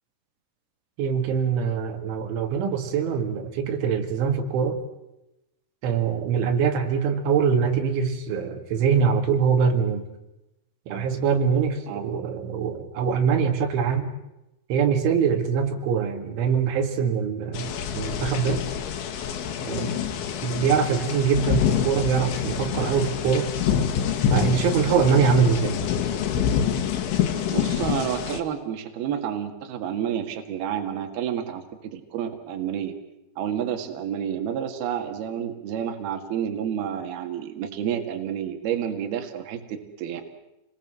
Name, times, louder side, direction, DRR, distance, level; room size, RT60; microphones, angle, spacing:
voice 1, 1.0-4.8 5.8-10.0 10.9-14.1 14.7-18.6 19.7-19.9 20.4-23.5 24.3-25.8, right 6 dB, 90° right, 5 dB, 4.6 m, -23 dB
sound 1, 17.5-28.4, left 8 dB, 85° left, 4.3 m, -26 dB
voice 2, 27.5-31.6 31.9-32.9 33.4-40.2, right 9 dB, 60° right, 5 dB, 3.8 m, -29 dB
29.5 x 21.0 x 7.7 m, 0.92 s
omnidirectional pair, 5.3 m